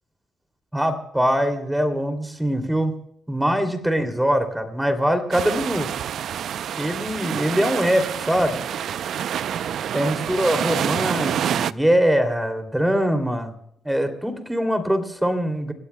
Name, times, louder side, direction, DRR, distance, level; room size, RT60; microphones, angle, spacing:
voice 1, 0.7-2.9 3.3-5.9 6.8-8.6 9.9-13.5 13.8-15.7, equal, 5° right, 6 dB, 2.6 m, -22 dB
sound 1, 5.3-11.7, right 9 dB, 70° right, 0.5 m, -27 dB
29.5 x 16.5 x 2.2 m, 0.71 s
cardioid pair, 90°, 0 cm